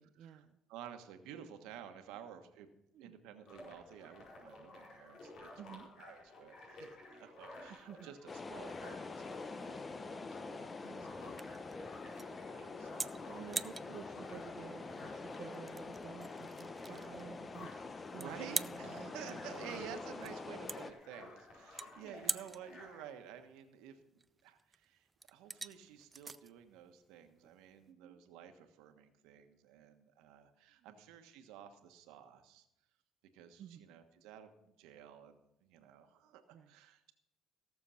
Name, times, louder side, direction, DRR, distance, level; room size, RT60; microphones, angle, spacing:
voice 1, 0.0-0.6 1.3-1.4 2.9-3.1 5.6-5.9 7.9-8.1 10.8-12.2 13.2-19.8 21.8-22.4 27.9-28.3 30.8-31.0 33.6-33.9 36.5-36.7, right 9 dB, 60° right, 6 dB, 0.7 m, -53 dB
voice 2, 0.7-2.7 3.0-11.7 12.4-13.2 18.2-24.0 24.4-32.7 33.3-37.1, right 9 dB, 85° right, 7 dB, 1.3 m, -53 dB
sound 1, 3.5-23.1, left 2 dB, 60° left, 4.8 m, -54 dB
sound 2, 8.3-20.9, left 3 dB, 25° left, 0.7 m, -46 dB
sound 3, 9.1-27.9, right 4 dB, 25° right, 0.5 m, -46 dB
17.0 x 7.0 x 5.7 m, 0.83 s
cardioid pair, 100°, 0 cm